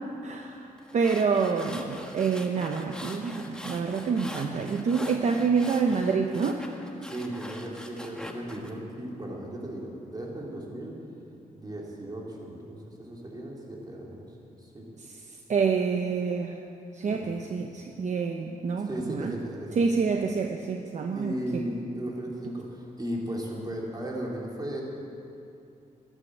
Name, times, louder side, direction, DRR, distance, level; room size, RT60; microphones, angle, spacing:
voice 1, 0.2-6.6 15.5-16.6 16.9-19.3 19.8-21.6, right 5 dB, 55° right, 4 dB, 0.9 m, -27 dB
sound 1, 0.8-8.7, left 1 dB, 5° left, 1.5 m, -42 dB
voice 2, 7.0-11.0 11.5-14.2 14.6-14.8 17.1-17.3 18.8-19.9 21.1-24.8, right 1 dB, 30° right, -2 dB, 3.4 m, -36 dB
12.5 x 12.5 x 8.0 m, 2.6 s
cardioid pair, 95°, 14 cm